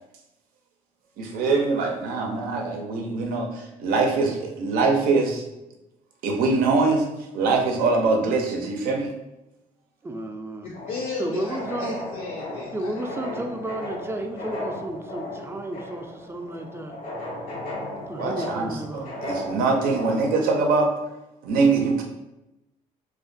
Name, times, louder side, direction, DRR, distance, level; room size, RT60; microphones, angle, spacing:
voice 1, 1.2-5.4 6.2-7.1 7.3-9.1 18.2-20.9 21.4-22.0, right 3 dB, 80° right, 2 dB, 0.5 m, -23 dB
voice 2, 10.0-10.7 11.2-12.0 12.7-17.0 18.1-19.1, right 1 dB, 15° right, 4 dB, 0.4 m, -32 dB
voice 3, 10.6-13.0 13.3-13.4, left 4 dB, 65° left, -3 dB, 0.4 m, -34 dB
sound 1, 10.7-20.3, left 1 dB, 85° left, 0.9 m, -35 dB
2.4 x 2.1 x 2.5 m, 0.95 s
cardioid pair, 80°, 15 cm